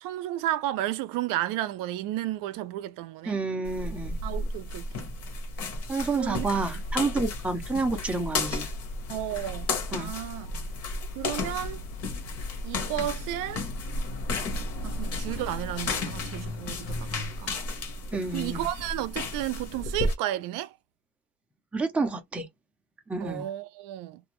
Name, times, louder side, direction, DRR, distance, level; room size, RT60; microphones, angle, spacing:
voice 1, 0.0-3.4 4.2-5.1 6.1-6.5 9.1-10.5 11.1-11.8 12.6-13.7 14.8-17.6 18.3-20.7 23.2-24.2, right 13 dB, 80° right, 0.5 m, -33 dB
voice 2, 3.3-4.2 5.9-8.7 9.9-10.1 18.1-18.7 21.7-22.5 23.1-23.5, right 3 dB, 5° right, 0.4 m, -29 dB
sound 1, 3.7-20.1, left 2 dB, 50° left, 1.0 m, -33 dB
sound 2, 6.2-17.1, left 10 dB, 85° left, 0.7 m, -43 dB
2.5 x 2.1 x 2.9 m
cardioid pair, 170°, 32 cm